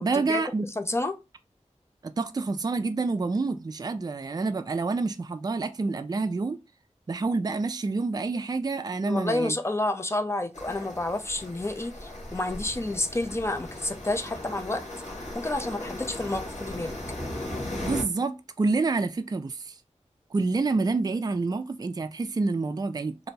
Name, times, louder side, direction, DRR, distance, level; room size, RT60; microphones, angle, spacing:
voice 1, 0.0-0.7 2.0-6.6 7.1-9.5 17.8-19.8 20.3-23.3, right 3 dB, 35° right, 0.3 m, -28 dB
voice 2, 0.8-1.2 9.0-14.8 15.3-16.9, left 2 dB, 20° left, 0.5 m, -29 dB
sound 1, 10.5-18.0, left 1 dB, 90° left, 1.1 m, -37 dB
2.6 x 2.1 x 3.9 m
wide cardioid pair, 50°, 12 cm